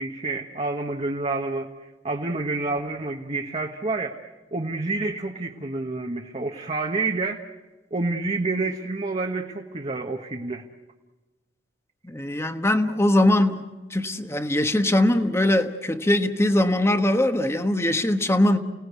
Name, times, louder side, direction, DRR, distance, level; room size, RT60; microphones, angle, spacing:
voice 1, 0.0-1.7 2.0-4.2 4.5-7.4 7.9-10.6, right 3 dB, 35° right, 1.2 m, -28 dB
voice 2, 12.0-18.6, left 1 dB, 15° left, 1.3 m, -21 dB
29.5 x 18.0 x 8.2 m
head